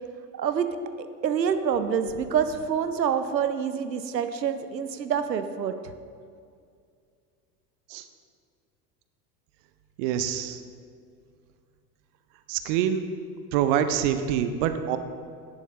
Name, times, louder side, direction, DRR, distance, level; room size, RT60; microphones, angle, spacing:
voice 1, 0.3-0.7 1.0-5.7, right 7 dB, 80° right, 10 dB, 0.6 m, -27 dB
voice 2, 10.0-10.6 12.5-13.0 13.5-15.0, right 9 dB, 35° right, 9 dB, 0.4 m, -25 dB
10.0 x 7.1 x 2.9 m, 2.2 s
figure-of-eight pair, 75°, 50 cm